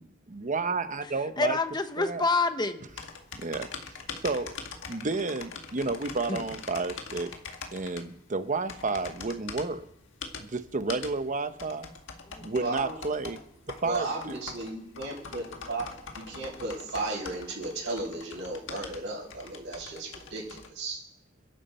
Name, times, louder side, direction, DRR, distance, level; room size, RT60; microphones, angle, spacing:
voice 1, 0.0-1.6 2.0-2.2 3.3-3.7 4.2-4.6 4.9-7.3 7.7-9.8 10.4-11.9 12.4-13.4 13.7-14.4, right 3 dB, 40° right, 10 dB, 0.9 m, -31 dB
voice 2, 1.0-2.9 6.3-6.4 12.2-12.5, left 3 dB, 20° left, 8 dB, 1.1 m, -28 dB
sound 1, 2.9-20.7, left 5 dB, 65° left, 1.7 m, -43 dB
voice 3, 12.5-12.9 13.8-15.9 16.1-21.0, right 2 dB, 65° right, -8 dB, 5.6 m, -35 dB
28.5 x 11.0 x 4.4 m, 0.82 s
head